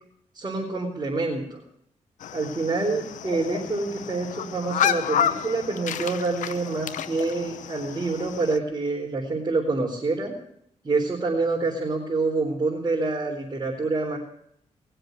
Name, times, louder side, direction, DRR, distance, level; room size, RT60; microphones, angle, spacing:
voice 1, 0.3-1.6 2.3-10.3 10.8-14.2, right 3 dB, 30° right, -4 dB, 4.1 m, -27 dB
sound 1, 2.2-8.6, left 9 dB, 85° left, 0.8 m, -30 dB
20.5 x 7.7 x 8.0 m, 0.71 s
cardioid pair, 90°, 13 cm